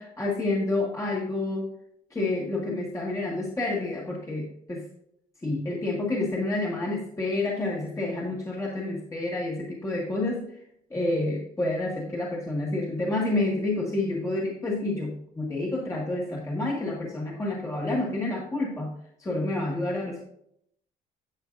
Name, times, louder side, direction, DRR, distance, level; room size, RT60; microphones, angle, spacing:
voice 1, 0.0-1.7 2.1-4.8 5.4-10.6 10.9-18.9 19.2-20.2, left 2 dB, 20° left, -3 dB, 2.0 m, -29 dB
11.5 x 6.9 x 2.6 m, 0.70 s
cardioid pair, 110°, 17 cm